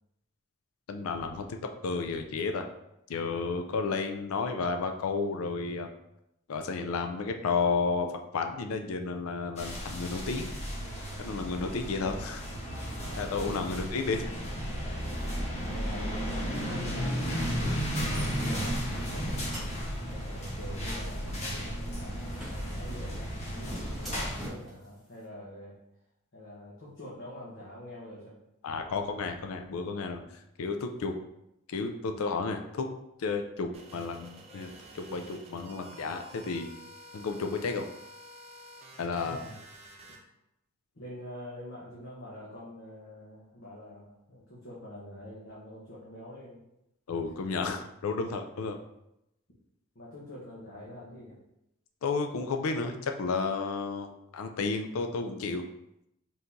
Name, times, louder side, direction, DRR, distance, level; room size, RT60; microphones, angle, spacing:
voice 1, 0.9-1.6 1.8-2.7 3.1-5.9 6.5-10.5 11.2-12.5 13.2-14.3 28.6-30.3 30.6-31.2 31.7-32.9 33.2-36.7 37.1-37.9 39.0-39.4 47.1-48.8 52.0-55.7, left 4 dB, 75° left, 5 dB, 0.4 m, -32 dB
sound 1, 9.6-24.5, equal, 30° left, 1.0 m, -34 dB
sound 2, 15.0-24.9, right 1 dB, ahead, 1.4 m, -46 dB
voice 2, 15.7-19.5 20.1-25.7 26.3-28.4 28.8-29.2 39.2-39.6 40.9-46.6 49.9-51.4, left 1 dB, 55° left, -7 dB, 1.0 m, -46 dB
sound 3, 33.7-40.2, right 1 dB, 30° right, 0.5 m, -50 dB
4.4 x 3.7 x 2.6 m, 0.84 s
head